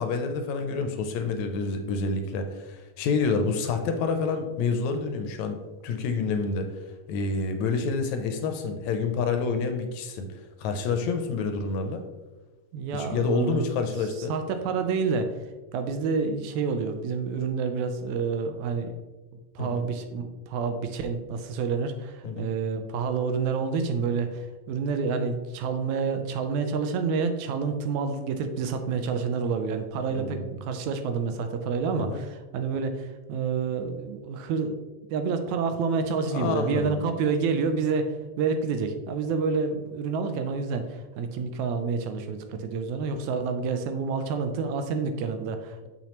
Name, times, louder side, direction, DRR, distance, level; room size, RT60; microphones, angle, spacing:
voice 1, 0.0-5.6 5.8-6.7 7.1-12.0 12.9-14.4 19.6-19.8 22.2-22.5 30.2-30.5 32.0-32.2 36.3-37.0, left 4 dB, 80° left, 6 dB, 1.8 m, -28 dB
voice 2, 12.7-13.6 14.3-15.4 15.7-18.9 19.5-34.8 35.1-45.9, right 5 dB, 80° right, 7 dB, 1.9 m, -28 dB
6.9 x 5.8 x 3.0 m, 1.2 s
omnidirectional pair, 3.5 m